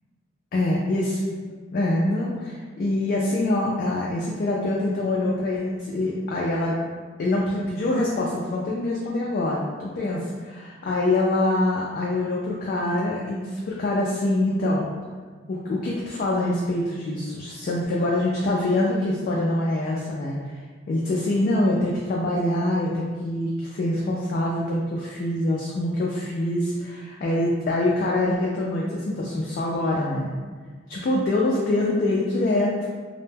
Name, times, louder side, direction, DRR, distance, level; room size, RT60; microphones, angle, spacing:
voice 1, 0.5-1.2 1.7-6.8 7.2-14.9 15.5-20.4 20.9-30.3 30.9-32.7, left 1 dB, 50° left, -4 dB, 0.3 m, -25 dB
2.1 x 2.1 x 3.2 m, 1.5 s
head